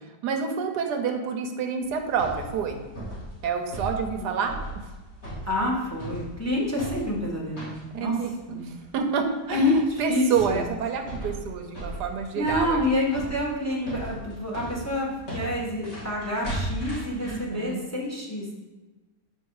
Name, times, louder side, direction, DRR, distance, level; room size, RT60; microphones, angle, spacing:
voice 1, 0.2-2.8 3.4-4.6 7.9-9.6 10.0-12.8 17.2-17.8, right 6 dB, 85° right, 5 dB, 1.4 m, -28 dB
sound 1, 1.8-17.4, right 1 dB, 40° left, 2.2 m, -38 dB
voice 2, 5.4-8.1 8.5-8.7 9.5-10.6 12.3-18.5, left 1 dB, 10° left, -3 dB, 1.2 m, -27 dB
6.5 x 5.1 x 4.7 m, 1.2 s
omnidirectional pair, 1.7 m